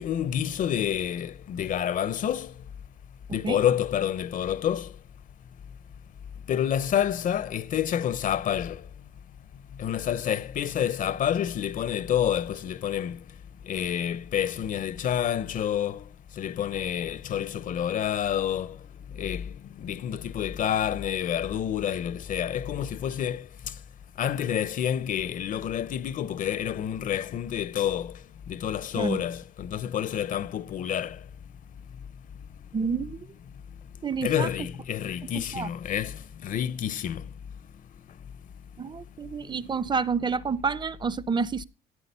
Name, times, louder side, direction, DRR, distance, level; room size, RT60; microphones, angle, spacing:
voice 1, 0.0-2.5 3.3-4.9 6.5-8.8 9.8-13.2 13.7-16.0 16.4-18.8 19.2-19.5 19.8-23.5 24.2-28.1 28.5-31.2 34.2-37.2, left 9 dB, 50° left, 0.7 m, -28 dB
voice 2, 32.7-33.2 34.0-34.5 35.5-35.7 38.8-41.6, right 5 dB, 25° right, 0.7 m, -28 dB
14.5 x 8.9 x 5.5 m
cardioid pair, 110°, 17 cm